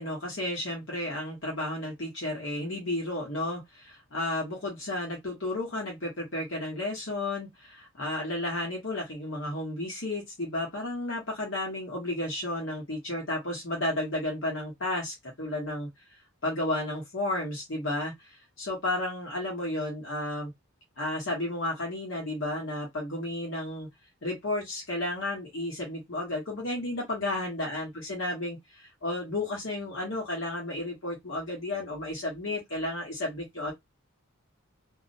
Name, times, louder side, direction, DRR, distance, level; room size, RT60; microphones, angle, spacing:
voice 1, 0.0-15.9 16.4-18.1 18.6-20.5 21.0-23.9 24.2-33.7, left 1 dB, 65° left, 1.1 m, -32 dB
2.5 x 2.0 x 2.6 m
head